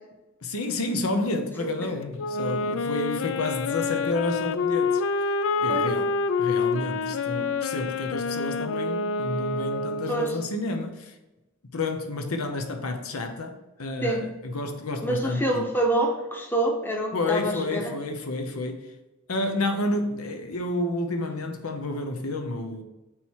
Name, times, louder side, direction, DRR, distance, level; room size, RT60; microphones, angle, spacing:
voice 1, 0.4-5.0 5.6-6.1 6.4-11.2 11.7-15.6 17.1-18.9 19.3-22.8, left 2 dB, 80° left, 0.9 m, -30 dB
Wind instrument woodwind instrument, 2.2-10.5, left 4 dB, 60° left, 0.4 m, -27 dB
voice 2, 15.0-17.8, right 1 dB, 10° left, 0.9 m, -26 dB
8.8 x 3.2 x 4.5 m
head